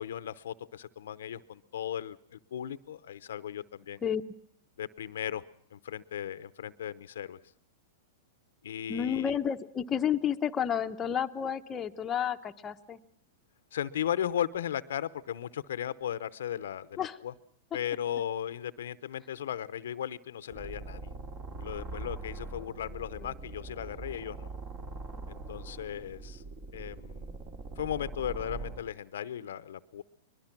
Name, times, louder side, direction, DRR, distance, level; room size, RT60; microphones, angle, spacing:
voice 1, 0.0-4.0 4.8-5.4 5.7-7.4 8.6-9.4 13.7-17.3 17.7-21.1 21.6-24.5 25.3-26.4 26.7-27.4 27.8-30.0, left 10 dB, 80° left, 15 dB, 0.8 m, -36 dB
voice 2, 8.9-13.0 17.0-17.2 23.2-23.3, left 8 dB, 20° left, 5 dB, 0.9 m, -31 dB
sound 1, 20.5-28.8, right 3 dB, 35° right, 3.0 m, -42 dB
22.0 x 21.5 x 6.0 m, 0.65 s
hypercardioid pair, 130°, 0 cm